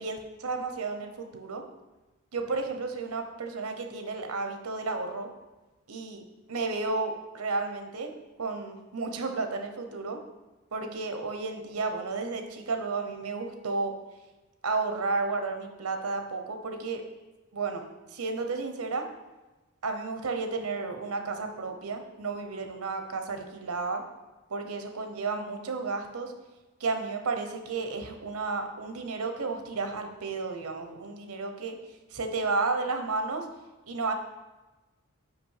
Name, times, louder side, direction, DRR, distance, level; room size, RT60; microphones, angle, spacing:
voice 1, 0.0-1.6 2.3-5.3 5.9-6.2 6.5-8.1 8.4-10.2 10.7-13.9 14.6-17.0 17.5-17.8 18.1-19.1 19.8-24.0 24.5-26.3 26.8-31.8 32.1-33.5 33.9-34.1, right 3 dB, 85° right, 5 dB, 0.9 m, -32 dB
5.9 x 5.0 x 5.6 m, 1.1 s
head